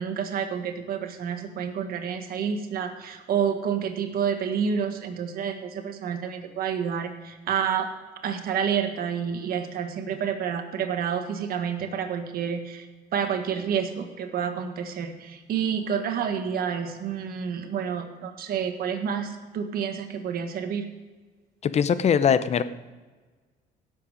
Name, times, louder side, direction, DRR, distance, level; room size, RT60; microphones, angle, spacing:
voice 1, 0.0-7.9 8.2-12.9 13.1-20.9, right 7 dB, 65° right, 6 dB, 1.6 m, -29 dB
voice 2, 21.6-22.6, left 7 dB, 40° left, 14 dB, 0.7 m, -21 dB
17.0 x 7.6 x 5.1 m, 1.4 s
cardioid pair, 110°, 17 cm